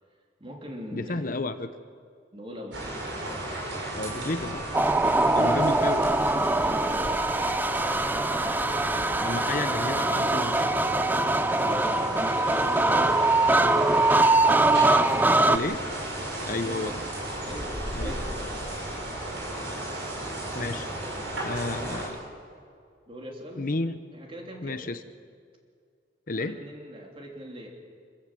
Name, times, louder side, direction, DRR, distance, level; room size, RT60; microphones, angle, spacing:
voice 1, 0.4-1.4 2.3-3.2 6.6-8.0 11.6-14.1 14.8-15.7 16.4-17.1 17.4-19.1 23.1-23.7 24.1-24.9 26.4-27.7, equal, 30° right, 0 dB, 3.5 m, -41 dB
voice 2, 0.9-1.7 3.9-4.6 5.3-6.1 9.2-10.7 15.4-15.8 16.5-17.0 17.9-18.2 20.5-20.9 21.4-22.2 23.6-24.0 24.6-25.0 26.3-26.6, left 2 dB, 50° left, 10 dB, 0.8 m, -31 dB
sound 1, 2.7-22.1, right 1 dB, 75° right, 6.6 m, -34 dB
sound 2, 4.7-15.6, right 2 dB, 10° right, 0.5 m, -23 dB
27.0 x 14.5 x 7.7 m, 2.2 s
head